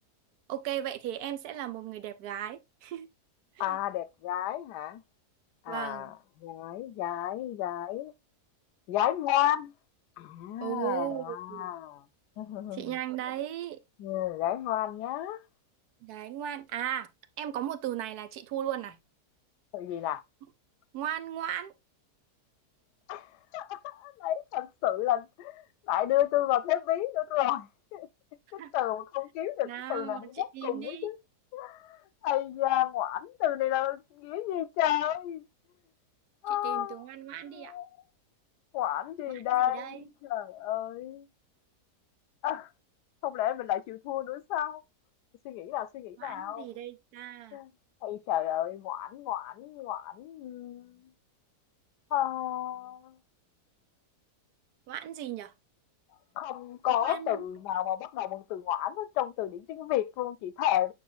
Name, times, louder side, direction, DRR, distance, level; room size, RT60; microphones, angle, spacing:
voice 1, 0.5-3.1 3.6-3.8 5.7-6.1 10.6-11.7 12.7-13.8 16.0-17.1 17.4-19.0 20.9-21.7 28.6-28.7 29.6-31.1 36.6-37.7 39.3-40.1 46.2-47.6 54.9-55.5 57.0-57.4, right 11 dB, 75° right, 1.2 m, -36 dB
voice 2, 3.6-5.0 5.6-8.1 8.9-9.7 10.2-12.1 12.4-13.0 14.0-15.4 19.7-20.2 23.1-23.3 23.5-28.1 28.5-31.2 31.5-32.0 32.2-35.5 36.4-37.0 37.5-37.9 38.7-41.3 42.4-42.7 43.2-44.8 45.4-46.7 47.5-47.7 48.0-51.0 52.1-53.2 56.4-60.9, left 12 dB, 90° left, 1.2 m, -31 dB
8.5 x 6.0 x 2.3 m
omnidirectional pair, 1.7 m